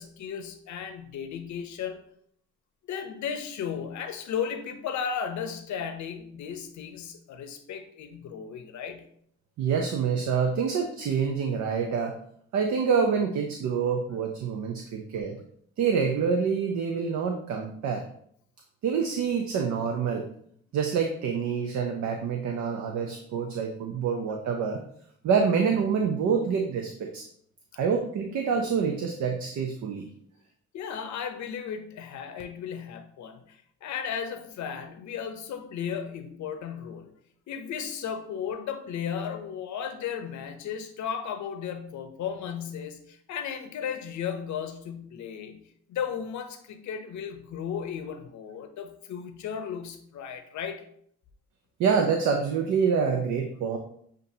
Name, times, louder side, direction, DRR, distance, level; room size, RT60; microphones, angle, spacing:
voice 1, 0.0-2.0 2.9-9.1 30.7-37.2 37.5-45.6 45.9-50.8, left 7 dB, 70° left, 7 dB, 0.7 m, -35 dB
voice 2, 9.6-12.2 12.5-15.4 15.8-18.1 18.8-20.3 20.7-24.8 25.2-27.2 27.8-30.1 51.8-53.8, right 6 dB, 70° right, 3 dB, 0.6 m, -26 dB
7.2 x 2.6 x 2.7 m, 0.65 s
cardioid pair, 90°, 30 cm